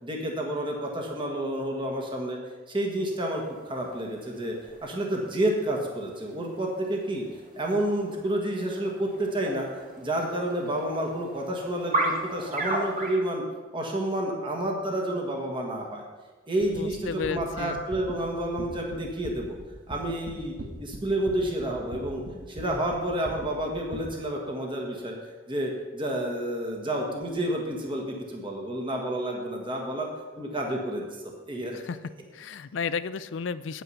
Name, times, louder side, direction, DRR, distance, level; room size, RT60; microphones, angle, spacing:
voice 1, 0.0-2.4 2.7-4.5 4.8-7.2 7.6-13.4 13.7-16.0 16.5-19.6 19.9-20.5 20.8-22.2 22.5-25.2 25.5-30.1 30.4-31.1 31.5-31.8, right 1 dB, 25° right, 0 dB, 1.5 m, -30 dB
sound 1, 3.1-13.2, right 1 dB, 45° right, 2.2 m, -36 dB
sound 2, 16.6-24.0, right 1 dB, 70° right, 1.3 m, -41 dB
voice 2, 16.7-17.8 31.7-32.0 32.3-33.8, left 5 dB, 80° left, 14 dB, 0.5 m, -33 dB
9.3 x 9.2 x 5.6 m, 1.3 s
head